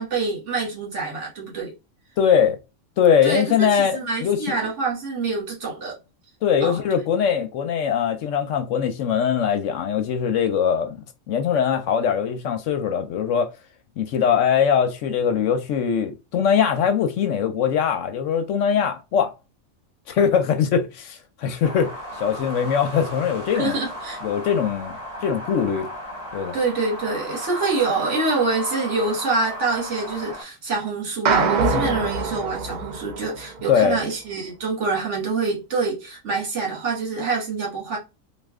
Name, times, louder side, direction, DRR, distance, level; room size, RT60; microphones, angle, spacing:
voice 1, 0.0-1.7 3.2-6.0 6.6-6.8 23.5-24.2 26.5-38.0, right 4 dB, 60° right, 1.6 m, -26 dB
voice 2, 2.2-2.6 3.0-4.6 6.4-11.0 11.3-13.5 14.0-19.3 20.1-21.9 22.2-23.8 24.2-25.9 26.3-26.6 31.7-32.0 33.7-34.0, left 7 dB, 70° left, 0.9 m, -21 dB
sound 1, 21.6-30.4, equal, 40° right, 1.9 m, -35 dB
sound 2, 31.3-33.7, right 4 dB, 85° right, 0.4 m, -24 dB
3.2 x 2.3 x 3.5 m
omnidirectional pair, 1.4 m